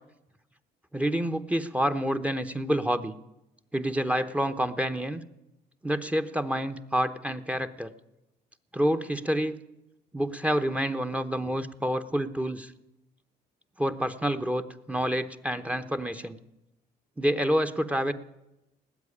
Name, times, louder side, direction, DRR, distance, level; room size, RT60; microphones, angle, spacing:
voice 1, 0.9-3.1 3.7-5.2 5.8-7.9 8.7-9.6 10.1-12.7 13.8-16.4 17.2-18.1, equal, 5° right, 11 dB, 0.9 m, -28 dB
19.0 x 7.8 x 9.8 m, 0.91 s
cardioid pair, 110°, 17 cm